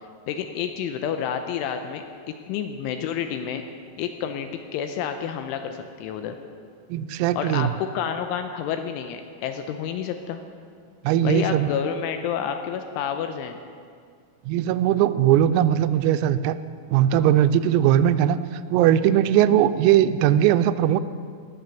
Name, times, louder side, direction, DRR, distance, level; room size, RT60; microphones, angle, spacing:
voice 1, 0.3-3.6 4.0-6.4 7.4-10.4 11.2-13.6, left 8 dB, 85° left, 7 dB, 2.9 m, -29 dB
voice 2, 6.9-7.7 11.1-11.7 14.5-16.6 16.9-18.4 18.7-21.0, right 11 dB, 90° right, 12 dB, 3.3 m, -19 dB
19.0 x 7.5 x 7.0 m, 2.1 s
omnidirectional pair, 6.0 m